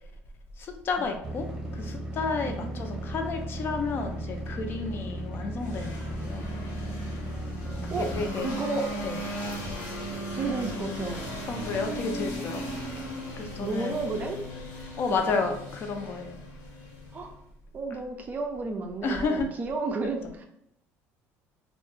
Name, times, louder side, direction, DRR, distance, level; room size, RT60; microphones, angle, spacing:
voice 1, 0.6-1.5 1.7-6.5 8.0-8.6 9.0-9.2 11.5-12.7 13.4-14.0 14.8-16.4 17.9-18.0 19.0-19.5 20.2-20.3, left 4 dB, 40° left, 5 dB, 0.4 m, -31 dB
sound 1, 1.2-8.3, right 1 dB, 10° right, 0.8 m, -36 dB
voice 2, 2.4-3.1 7.9-8.1 8.4-8.9 10.3-11.3 12.2-12.3 13.6-14.4 15.3-15.4 17.1-17.3 17.7-20.4, right 3 dB, 30° right, 4 dB, 0.4 m, -32 dB
sound 2, 5.6-17.4, equal, 75° left, 0.9 m, -37 dB
2.2 x 2.0 x 3.0 m, 0.79 s
cardioid pair, 120°, 6 cm